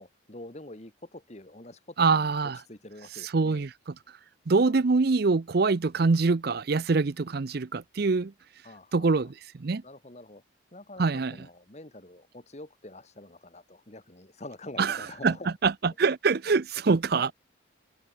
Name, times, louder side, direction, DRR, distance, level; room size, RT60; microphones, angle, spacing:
voice 1, 0.0-3.7 4.5-4.7 8.6-9.1 9.8-10.4 10.7-15.5 17.1-17.3, left 1 dB, 35° left, 1.8 m, -46 dB
voice 2, 2.0-2.6 3.3-3.7 4.5-8.3 8.9-9.3 9.6-9.8 11.0-11.3 14.8-15.0 15.2-15.3 15.6-15.7 16.0-17.3, right 4 dB, 50° right, 0.5 m, -24 dB
head